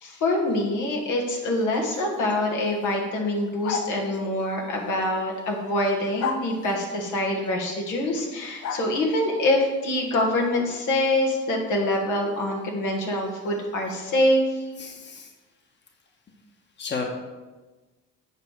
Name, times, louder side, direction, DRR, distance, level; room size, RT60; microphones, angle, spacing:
voice 1, 0.0-14.4, left 1 dB, 80° left, 0 dB, 1.6 m, -25 dB
sound 1, 3.6-4.0 6.2-6.5 8.6-8.9, left 6 dB, 65° left, 0.8 m, -29 dB
voice 2, 14.8-15.3 16.8-17.0, left 5 dB, 35° left, 2 dB, 1.3 m, -33 dB
8.3 x 5.1 x 4.7 m, 1.2 s
cardioid pair, 90°, 30 cm